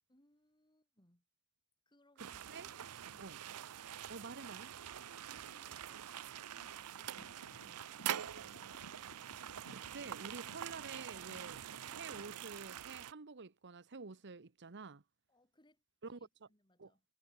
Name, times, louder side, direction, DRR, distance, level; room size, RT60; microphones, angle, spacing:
voice 1, 0.1-1.2 1.8-3.4 4.9-9.0 15.3-15.8 16.1-17.0, left 1 dB, 20° left, 6.9 m, -71 dB
voice 2, 2.2-2.7 3.2-3.4 4.1-4.7 9.7-11.6 11.9-15.0 16.0-16.2 16.8-16.9, right 4 dB, 50° right, 1.0 m, -49 dB
sound 1, 2.2-13.1, right 10 dB, 85° right, 0.6 m, -45 dB
sound 2, 6.8-12.3, left 1 dB, 80° left, 5.9 m, -61 dB
head